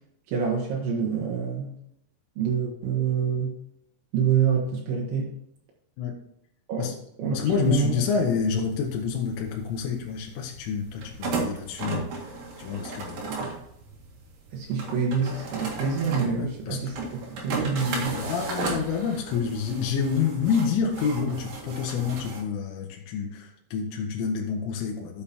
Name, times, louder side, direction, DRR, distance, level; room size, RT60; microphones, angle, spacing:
voice 1, 0.3-1.7 2.4-3.6 4.1-5.4 6.7-8.0 13.2-13.5 14.5-17.0 17.3-18.3, right 6 dB, 75° right, -3 dB, 3.7 m, -27 dB
voice 2, 7.3-12.1 12.6-13.2 16.4-16.8 18.1-25.2, left 6 dB, 85° left, 0 dB, 3.6 m, -28 dB
sound 1, 7.4-22.4, right 3 dB, 55° right, 3.1 m, -36 dB
12.0 x 6.9 x 2.9 m, 0.77 s
omnidirectional pair, 5.5 m